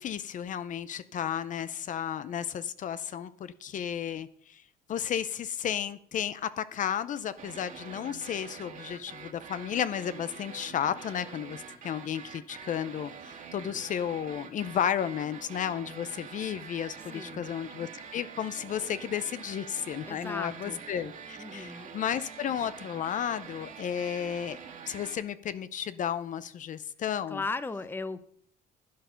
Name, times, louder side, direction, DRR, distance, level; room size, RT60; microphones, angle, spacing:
voice 1, 0.0-4.6 4.9-13.1 13.5-24.6 24.9-27.4, left 9 dB, 50° left, 0.6 m, -33 dB
sound 1, 7.4-25.2, right 6 dB, 50° right, 1.9 m, -46 dB
voice 2, 17.1-17.5 20.1-20.8 21.4-21.9 27.3-28.3, left 3 dB, 10° left, 0.7 m, -37 dB
11.0 x 9.2 x 5.7 m
cardioid pair, 110°, 17 cm